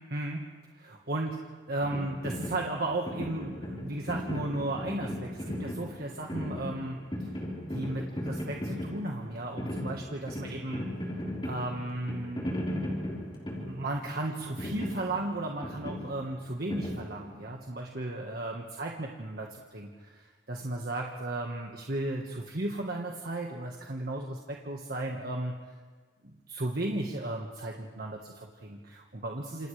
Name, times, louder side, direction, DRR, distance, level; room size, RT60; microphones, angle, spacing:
voice 1, 0.1-0.4 0.7-1.4 1.7-7.0 7.7-10.8 11.4-12.5 13.6-25.5 26.2-29.7, right 2 dB, 55° right, 0 dB, 1.5 m, -35 dB
sound 1, 1.8-17.6, left 1 dB, 25° left, 4.6 m, -37 dB
28.5 x 27.5 x 3.4 m, 1.4 s
head